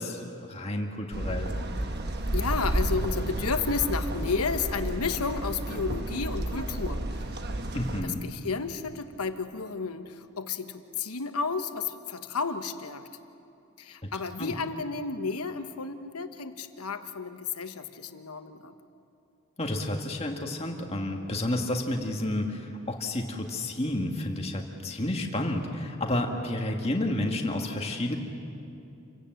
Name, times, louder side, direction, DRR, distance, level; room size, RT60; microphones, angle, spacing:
voice 1, 0.0-1.5 7.7-8.3 14.0-14.1 14.4-14.5 19.6-28.2, left 1 dB, 25° left, 2 dB, 1.9 m, -30 dB
sound 1, 1.1-8.0, right 1 dB, 45° right, 1.3 m, -31 dB
voice 2, 2.3-7.3 8.0-13.1 13.8-18.7, left 4 dB, 90° left, 8 dB, 1.2 m, -32 dB
27.5 x 17.0 x 7.8 m, 2.7 s
head